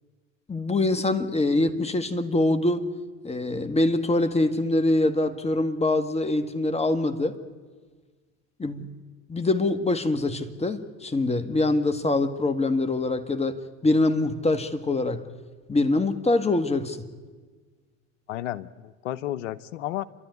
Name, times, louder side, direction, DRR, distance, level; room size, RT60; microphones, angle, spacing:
voice 1, 0.5-2.9 3.2-7.4 8.6-8.9 9.3-15.2 15.7-17.0, left 2 dB, 15° left, 1.7 m, -24 dB
voice 2, 18.3-20.0, left 13 dB, 80° left, 0.9 m, -32 dB
29.0 x 12.5 x 9.6 m
hypercardioid pair, 85°, 37 cm